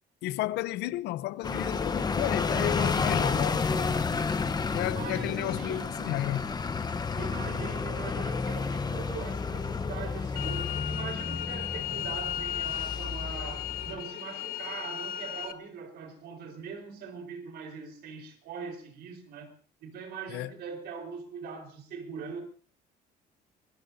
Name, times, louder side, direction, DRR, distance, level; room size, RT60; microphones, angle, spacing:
voice 1, 0.2-4.0 4.4-6.5 20.3-20.5, left 16 dB, 85° left, 0.7 m, -33 dB
sound 1, 1.4-14.0, left 4 dB, 25° left, 1.0 m, -31 dB
voice 2, 4.9-5.9 7.1-19.5 19.8-22.4, right 6 dB, 75° right, 4.5 m, -41 dB
sound 2, 10.4-15.5, left 12 dB, 60° left, 1.4 m, -35 dB
25.0 x 21.0 x 2.7 m
cardioid pair, 110°, 17 cm